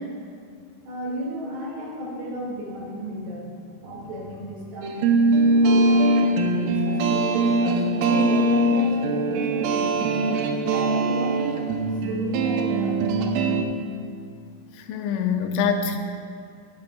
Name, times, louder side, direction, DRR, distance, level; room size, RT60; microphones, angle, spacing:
voice 1, 0.8-3.5 3.8-13.6, equal, 65° right, -4 dB, 3.9 m, -34 dB
sound 1, 4.8-13.6, right 2 dB, 90° right, 3.2 m, -21 dB
voice 2, 14.8-16.0, left 6 dB, 85° left, 5 dB, 3.1 m, -24 dB
12.0 x 10.5 x 2.2 m, 2.2 s
omnidirectional pair, 5.6 m